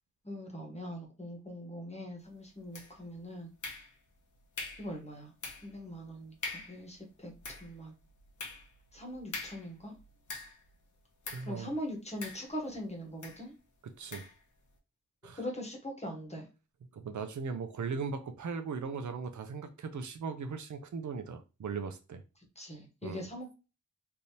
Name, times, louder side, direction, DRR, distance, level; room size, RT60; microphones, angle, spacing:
voice 1, 0.2-3.5 4.8-5.3 5.6-7.9 8.9-9.9 11.4-13.5 15.4-16.5 22.6-23.5, equal, 20° left, 1.1 m, -41 dB
sound 1, 2.7-3.1 3.6-4.2 4.6-4.9 5.4-5.8 6.1-6.2 6.4-6.8 7.2-10.7 11.2-11.6 12.2-12.8 13.2-13.4 14.1-14.4, left 3 dB, 90° left, 0.9 m, -43 dB
voice 2, 11.3-11.7 14.0-14.2 15.2-15.4 16.9-22.2 23.0-23.2, right 5 dB, 75° right, 0.6 m, -38 dB
3.4 x 2.8 x 2.7 m
wide cardioid pair, 120°, 29 cm